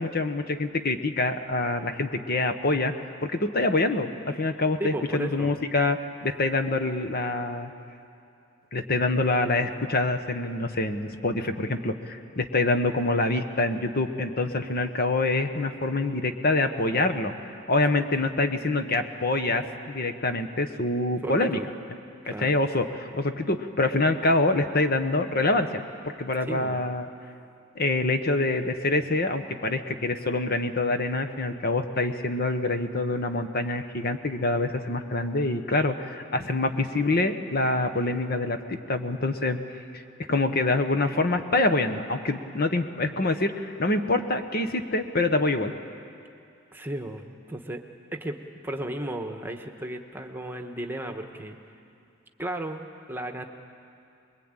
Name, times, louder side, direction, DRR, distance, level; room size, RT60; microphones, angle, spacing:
voice 1, 0.0-2.9 3.2-7.7 8.7-17.3 17.7-21.6 22.3-25.8 26.2-27.1 27.7-39.6 39.9-40.0 40.3-45.7, left 2 dB, 45° left, 8 dB, 1.1 m, -26 dB
voice 2, 4.8-5.6 17.9-18.2 21.2-21.7 22.2-22.6 26.4-26.9 46.7-47.8 48.1-48.4 48.6-51.6 52.4-53.4, right 1 dB, 10° right, 4 dB, 1.2 m, -34 dB
24.5 x 22.0 x 9.0 m, 2.5 s
head